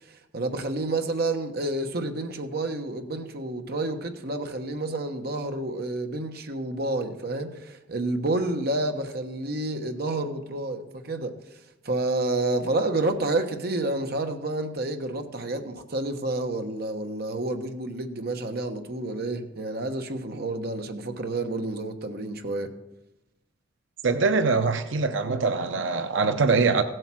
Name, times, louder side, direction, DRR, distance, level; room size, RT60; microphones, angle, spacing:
voice 1, 0.3-11.4 11.8-22.7, right 2 dB, 55° right, 1.2 m, -29 dB
voice 2, 24.0-26.8, right 4 dB, 80° right, 0.7 m, -23 dB
16.0 x 7.8 x 6.1 m
head